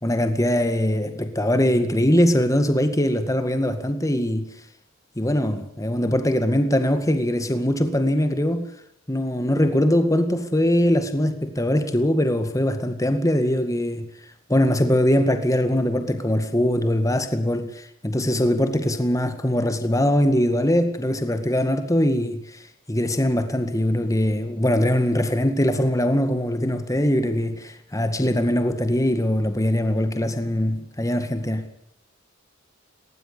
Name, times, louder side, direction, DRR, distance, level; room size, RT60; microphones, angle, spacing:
voice 1, 0.0-4.5 5.2-8.7 9.1-14.1 14.5-22.4 22.9-31.7, left 1 dB, 15° left, 2.0 m, -22 dB
19.5 x 18.5 x 8.5 m
head